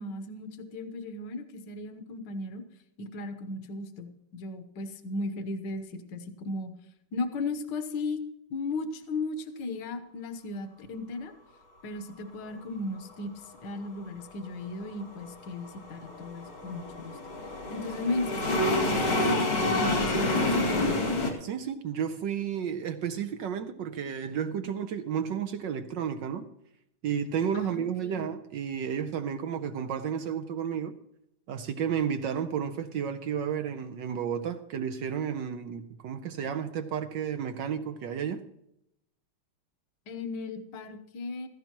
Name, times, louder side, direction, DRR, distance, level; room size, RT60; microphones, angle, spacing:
voice 1, 0.0-2.6 3.0-6.7 7.1-8.2 8.5-11.3 11.8-17.2 17.7-20.7 27.5-28.3 40.1-41.5, left 2 dB, 60° left, 1.6 m, -36 dB
sound 1, 14.4-21.3, left 2 dB, 80° left, 3.2 m, -28 dB
voice 2, 21.4-26.5 27.0-31.0 31.5-38.4, right 8 dB, 70° right, 1.2 m, -32 dB
16.0 x 14.5 x 3.0 m
omnidirectional pair, 2.3 m